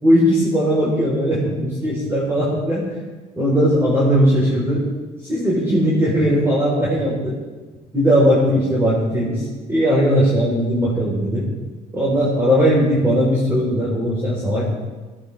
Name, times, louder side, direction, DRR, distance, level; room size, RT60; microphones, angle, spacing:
voice 1, 0.0-2.8 3.4-4.8 5.2-7.3 7.9-11.5 11.9-14.7, equal, 15° right, -6 dB, 4.3 m, -18 dB
17.0 x 14.5 x 3.5 m, 1.3 s
cardioid pair, 110°, 17 cm